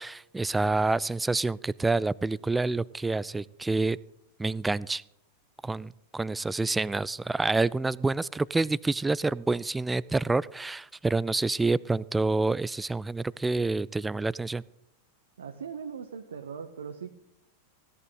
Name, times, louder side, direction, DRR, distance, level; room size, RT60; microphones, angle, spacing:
voice 1, 0.0-4.0 4.4-5.0 5.6-14.6, right 3 dB, 10° right, 22 dB, 0.3 m, -28 dB
voice 2, 15.4-17.1, right 6 dB, 65° right, 7 dB, 0.9 m, -39 dB
16.0 x 11.0 x 3.9 m, 0.81 s
figure-of-eight pair, 90°, 0 cm